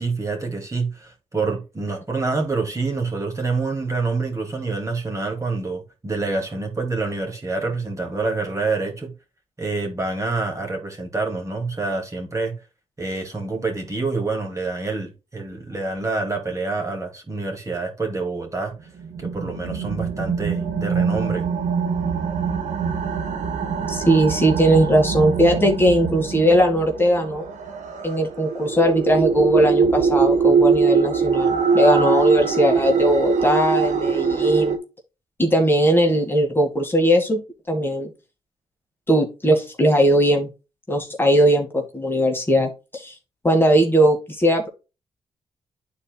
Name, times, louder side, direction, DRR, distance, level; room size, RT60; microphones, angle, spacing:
voice 1, 0.0-9.1 9.6-12.5 13.0-18.7 19.2-21.5, right 3 dB, 25° right, 2.4 m, -27 dB
sound 1, 19.0-34.8, right 5 dB, 85° right, 1.3 m, -22 dB
voice 2, 23.9-27.5 28.0-34.8 35.4-37.4 37.7-38.1 39.1-40.5 40.9-43.1 43.4-44.7, equal, 15° left, 1.8 m, -19 dB
11.5 x 4.3 x 2.3 m
cardioid pair, 80°, 13 cm